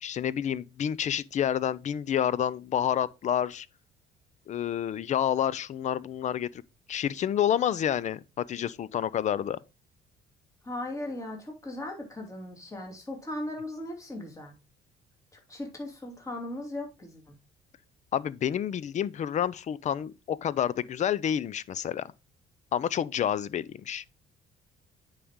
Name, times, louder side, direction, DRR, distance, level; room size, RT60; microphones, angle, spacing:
voice 1, 0.0-3.7 4.5-6.6 6.9-9.6 18.1-22.1 22.7-24.0, left 9 dB, 45° left, 0.5 m, -29 dB
voice 2, 10.6-14.5 15.3-17.4, left 1 dB, 20° left, 2.8 m, -38 dB
9.7 x 5.0 x 3.7 m
cardioid pair, 110°, 17 cm